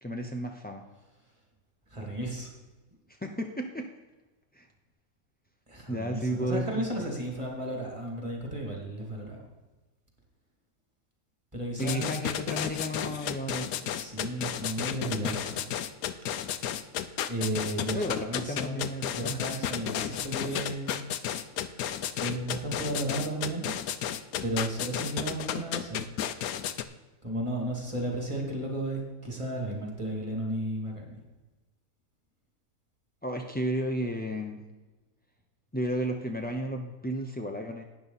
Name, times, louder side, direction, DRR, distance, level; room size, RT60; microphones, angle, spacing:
voice 1, 0.0-0.8 3.2-3.9 4.5-4.7 5.9-7.1 11.8-13.9 17.9-19.4 33.2-34.6 35.7-37.8, equal, 15° left, 2 dB, 0.3 m, -33 dB
voice 2, 1.9-2.5 5.7-9.4 11.5-12.2 13.9-15.7 17.3-21.0 21.4-21.6 22.2-23.7 24.4-26.0 27.2-31.2, right 1 dB, 20° right, -1 dB, 2.7 m, -34 dB
sound 1, 11.8-26.8, left 10 dB, 90° left, 1.1 m, -32 dB
12.0 x 9.5 x 4.1 m, 1.2 s
omnidirectional pair, 1.5 m